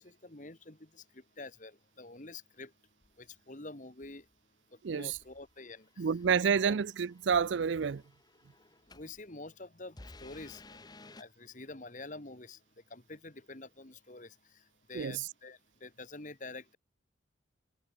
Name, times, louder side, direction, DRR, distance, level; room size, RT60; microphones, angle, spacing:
voice 1, 0.0-2.7 3.2-4.3 4.9-6.1 6.6-6.7 8.9-10.8 11.2-12.6 12.9-14.6 14.9-16.8, left 2 dB, 40° left, 2.0 m, -47 dB
sound 1, 3.0-3.3 4.0-4.3 5.1-9.2 9.9-11.2, left 2 dB, 20° left, 0.9 m, -56 dB
voice 2, 4.8-5.2 6.0-8.0 14.9-15.3, right 6 dB, 75° right, 0.5 m, -29 dB
head